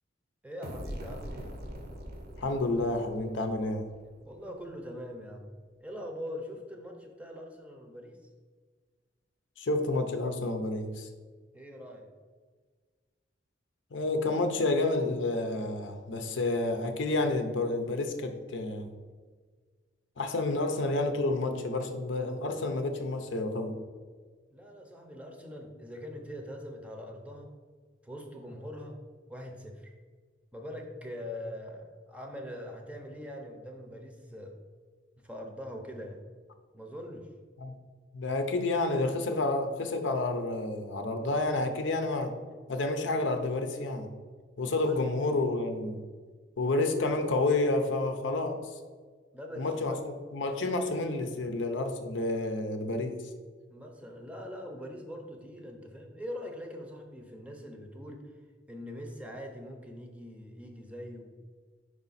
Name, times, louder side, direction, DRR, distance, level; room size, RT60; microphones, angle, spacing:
voice 1, 0.4-1.5 4.2-5.5 5.8-8.2 11.5-12.1 24.5-27.5 28.0-29.0 29.3-29.9 30.5-34.5 35.2-36.2 36.7-37.3 44.8-45.0 49.3-50.1 50.7-50.8 53.7-58.2 58.7-61.3, equal, 5° right, 2 dB, 0.7 m, -42 dB
sound 1, 0.6-4.3, equal, 55° right, 0.7 m, -43 dB
voice 2, 2.4-3.9 9.6-11.1 13.9-18.9 20.2-23.8 37.6-37.7 38.1-42.4 42.7-44.1 44.6-46.0 46.6-48.7 49.6-53.2, left 2 dB, 75° left, 6 dB, 0.6 m, -30 dB
4.9 x 4.9 x 4.1 m, 1.5 s
head